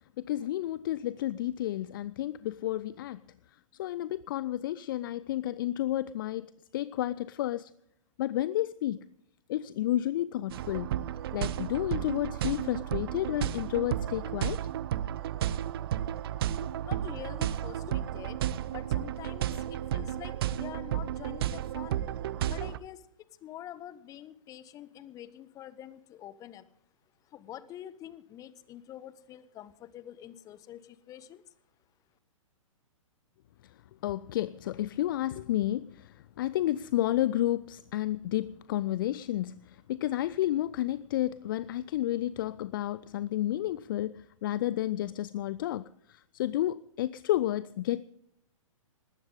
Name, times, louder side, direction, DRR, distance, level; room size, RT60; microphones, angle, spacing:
voice 1, 0.2-3.2 3.8-7.7 8.2-9.1 9.5-10.9 11.3-14.6 34.0-48.1, left 13 dB, 40° left, 0.4 m, -31 dB
sound 1, 10.5-22.8, right 11 dB, 45° right, 0.7 m, -33 dB
voice 2, 16.8-22.1 22.5-23.1 23.4-26.7 27.3-31.5, left 11 dB, 20° left, 0.9 m, -46 dB
20.0 x 15.0 x 3.7 m
figure-of-eight pair, 115°, 17 cm